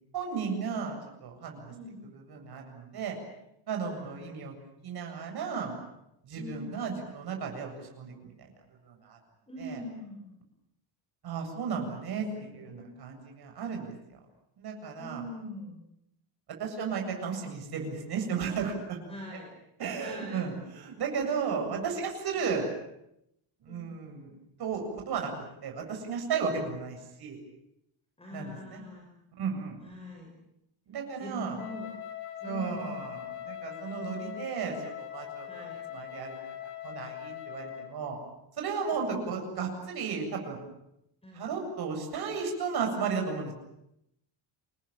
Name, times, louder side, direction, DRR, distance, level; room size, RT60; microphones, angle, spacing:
voice 1, 0.0-1.7 2.1-3.2 3.7-4.5 4.8-5.7 6.2-8.5 8.9-9.2 9.6-9.8 11.2-13.9 14.6-15.2 16.6-19.0 19.8-22.7 23.6-24.3 24.6-25.3 25.6-27.4 28.3-28.8 29.4-29.8 30.9-31.6 32.4-35.5 35.9-38.2 38.6-40.6 41.3-43.5, right 5 dB, 50° right, 2 dB, 7.9 m, -34 dB
voice 2, 1.7-2.1 4.0-4.5 6.4-6.8 9.5-10.3 12.0-13.0 15.0-15.8 19.1-19.5 20.0-20.5 21.5-21.8 23.7-23.9 28.2-29.1 29.8-30.3 31.2-31.9 32.4-33.1 35.5-35.8 38.9-39.5 41.2-41.5, left 1 dB, 10° left, 0 dB, 5.8 m, -43 dB
Wind instrument woodwind instrument, 31.6-38.0, left 12 dB, 85° left, 4.3 m, -41 dB
28.5 x 21.0 x 9.0 m, 0.81 s
cardioid pair, 175°, 50 cm